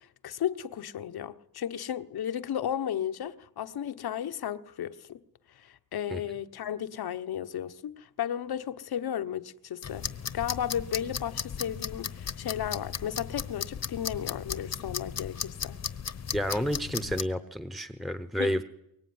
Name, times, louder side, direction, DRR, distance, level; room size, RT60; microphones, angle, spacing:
voice 1, 0.0-5.2 5.5-10.1 10.3-15.8 18.4-18.6, left 10 dB, 85° left, 1.1 m, -34 dB
sound 1, 9.8-17.2, left 7 dB, 45° left, 0.9 m, -36 dB
voice 2, 16.3-18.6, equal, ahead, 0.9 m, -30 dB
24.0 x 22.5 x 9.6 m
wide cardioid pair, 145°, 36 cm